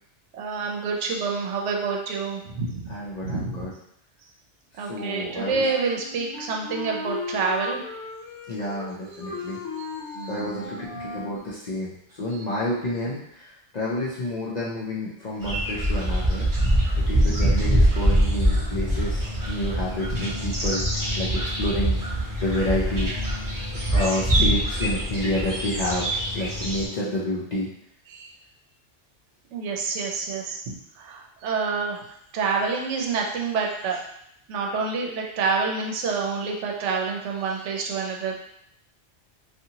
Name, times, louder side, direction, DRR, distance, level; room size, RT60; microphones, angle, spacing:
voice 1, 0.4-2.9 3.2-3.7 4.8-7.8 10.0-10.7 20.5-20.8 24.4-24.5 28.1-28.3 29.5-30.6 31.0-32.0 32.3-34.0 34.5-38.4, right 4 dB, 80° right, 0 dB, 0.9 m, -28 dB
voice 2, 2.9-3.7 4.7-5.7 8.5-9.6 10.3-16.5 17.0-20.8 21.2-22.0 22.4-23.1 23.9-26.1 26.3-27.7, left 1 dB, 55° left, -7 dB, 0.5 m, -29 dB
Wind instrument woodwind instrument, 5.6-11.4, left 3 dB, 80° left, 0.9 m, -36 dB
sound 1, 15.4-26.9, right 1 dB, 25° right, 0.4 m, -24 dB
2.7 x 2.4 x 2.7 m, 0.74 s
omnidirectional pair, 1.2 m